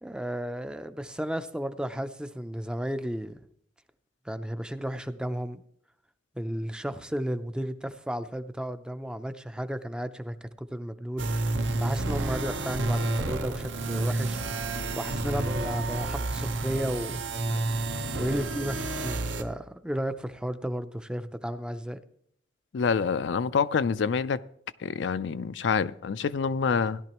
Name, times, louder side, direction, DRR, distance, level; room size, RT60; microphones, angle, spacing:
voice 1, 0.0-3.4 4.3-5.6 6.4-14.4 14.9-17.2 18.0-22.0, equal, 5° right, 0.5 m, -33 dB
sound 1, 11.2-19.4, right 2 dB, 75° right, 0.9 m, -30 dB
voice 2, 22.7-24.4 24.8-27.0, left 5 dB, 65° left, 0.4 m, -27 dB
16.5 x 11.5 x 3.0 m
head